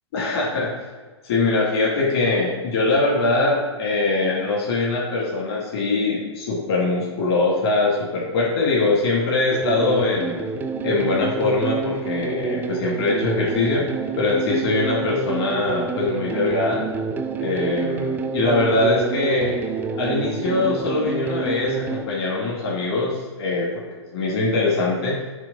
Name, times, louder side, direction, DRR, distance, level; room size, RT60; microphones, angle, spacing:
voice 1, 0.1-0.8 1.2-10.4 10.8-13.9 14.2-16.8 17.4-19.6 20.0-25.2, left 3 dB, 60° left, -4 dB, 2.1 m, -22 dB
sound 1, 9.5-22.0, right 5 dB, 10° right, 0.4 m, -28 dB
6.7 x 3.3 x 5.4 m, 1.4 s
hypercardioid pair, 115°, 15 cm